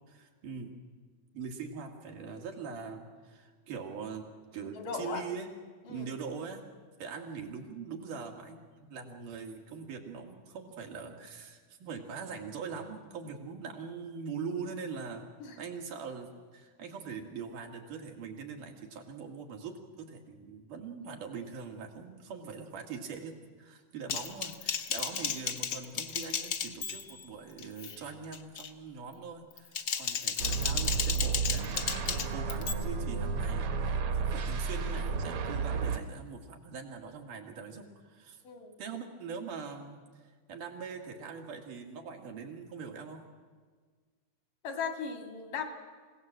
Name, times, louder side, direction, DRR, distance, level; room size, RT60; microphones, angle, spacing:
voice 1, 0.1-0.7 1.3-4.3 4.5-5.5 5.9-6.6 7.0-15.3 15.6-38.4 38.8-43.3, right 5 dB, 90° right, 2 dB, 3.7 m, -42 dB
voice 2, 4.7-5.2 5.9-6.1 15.4-15.6 38.4-38.8 44.6-45.6, left 6 dB, 80° left, 4 dB, 3.9 m, -37 dB
Typing, 24.1-27.3 27.6-28.0 28.3-28.7 29.5-32.7, left 7 dB, 65° left, 1.1 m, -34 dB
sound 1, 30.4-36.0, right 5 dB, 60° right, 1.6 m, -32 dB
27.5 x 17.0 x 7.6 m, 1.5 s
omnidirectional pair, 3.6 m